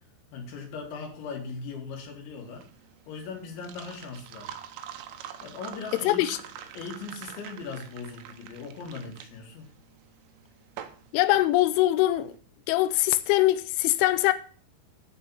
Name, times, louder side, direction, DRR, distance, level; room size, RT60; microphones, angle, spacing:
voice 1, 0.3-2.7 3.1-4.5 5.4-6.2 6.7-9.7, left 4 dB, 75° left, 4.7 m, -39 dB
sound 1, 2.4-12.3, right 10 dB, 80° right, 2.8 m, -44 dB
voice 2, 6.1-6.4 11.1-12.4 12.7-14.3, left 16 dB, 90° left, 3.1 m, -22 dB
11.5 x 4.5 x 7.1 m
omnidirectional pair, 5.5 m